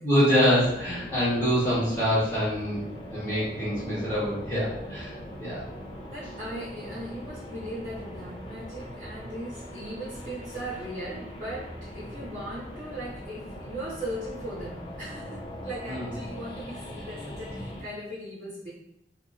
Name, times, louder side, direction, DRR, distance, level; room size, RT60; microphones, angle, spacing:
voice 1, 0.0-5.1 5.4-5.6 15.9-16.1, equal, 15° left, -10 dB, 1.1 m, -25 dB
sound 1, 0.6-17.8, left 1 dB, 30° left, 0.4 m, -41 dB
voice 2, 6.1-18.7, right 1 dB, 40° right, -10 dB, 0.9 m, -38 dB
2.8 x 2.6 x 2.4 m, 0.79 s
head